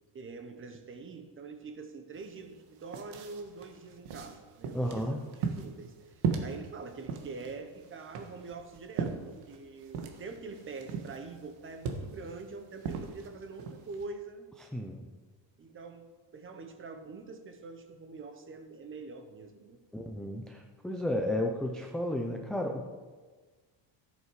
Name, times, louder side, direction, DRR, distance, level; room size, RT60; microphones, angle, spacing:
voice 1, 0.1-14.5 15.6-16.1 16.3-19.8, right 4 dB, 25° right, 7 dB, 1.0 m, -45 dB
sound 1, 2.1-2.2 2.6-14.1, right 6 dB, 85° right, 1.6 m, -38 dB
voice 2, 4.7-5.3 14.6-15.1 19.9-22.9, left 1 dB, ahead, 2 dB, 0.4 m, -33 dB
14.0 x 8.2 x 4.7 m, 1.4 s
cardioid pair, 170°, 48 cm